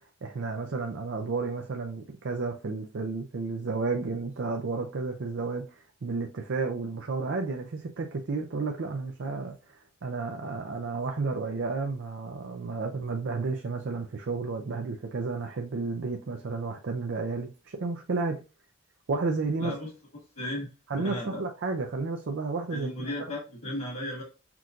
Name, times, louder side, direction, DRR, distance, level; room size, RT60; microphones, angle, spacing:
voice 1, 0.2-5.8 6.0-9.6 10.0-18.4 19.1-19.7 20.9-23.1, right 3 dB, 55° right, 0.5 m, -32 dB
voice 2, 19.6-19.9 20.3-20.7 21.0-21.4 22.7-24.2, left 1 dB, 85° left, 1.5 m, -35 dB
5.9 x 2.5 x 2.4 m
head